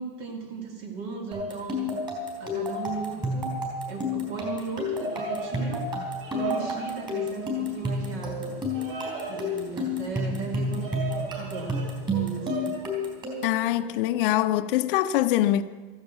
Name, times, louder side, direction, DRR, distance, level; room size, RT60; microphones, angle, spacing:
voice 1, 0.0-1.9 2.4-3.6 3.9-5.9 6.3-8.5 9.3-10.9 11.3-11.8 12.1-12.8, right 4 dB, 50° right, 2.5 m, -36 dB
sound 1, 1.3-13.6, left 2 dB, 15° right, 3.8 m, -31 dB
Bird vocalization bird call bird song, 4.8-12.8, right 4 dB, 70° right, 6.3 m, -37 dB
voice 2, 13.4-15.6, left 13 dB, 65° left, 0.7 m, -23 dB
14.5 x 10.5 x 8.1 m
supercardioid pair, 170°, 29 cm